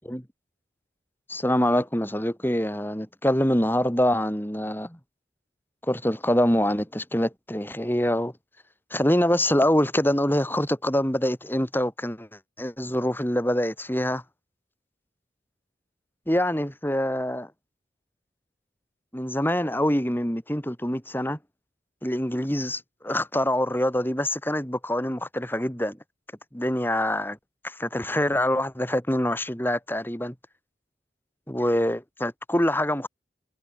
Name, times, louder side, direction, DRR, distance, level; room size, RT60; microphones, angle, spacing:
voice 1, 1.3-5.0 5.8-8.3 8.9-14.2 16.3-17.5 19.1-21.4 22.0-26.0 26.5-27.4 27.6-30.3 31.5-33.1, left 1 dB, 10° left, 6.8 m, -25 dB
head